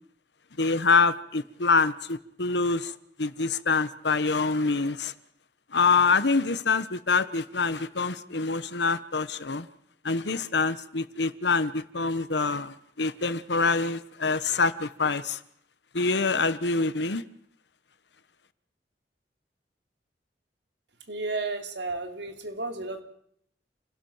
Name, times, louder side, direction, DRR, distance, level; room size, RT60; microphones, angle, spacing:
voice 1, 0.6-2.9 3.2-5.1 5.7-9.7 10.0-15.4 15.9-17.2, left 4 dB, 75° left, 1.2 m, -25 dB
voice 2, 21.1-23.0, right 3 dB, 75° right, 3.2 m, -33 dB
28.5 x 17.5 x 7.3 m
head